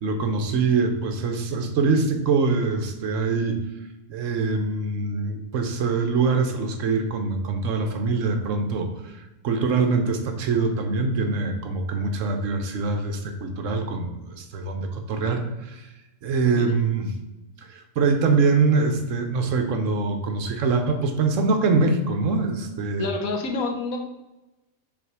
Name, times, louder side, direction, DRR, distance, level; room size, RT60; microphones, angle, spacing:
voice 1, 0.0-3.6 4.1-15.9 16.2-17.1 17.7-23.1, right 4 dB, 65° right, 6 dB, 1.0 m, -24 dB
voice 2, 23.0-24.0, left 3 dB, 75° left, 3 dB, 1.3 m, -27 dB
6.0 x 3.5 x 4.6 m, 1.0 s
omnidirectional pair, 1.5 m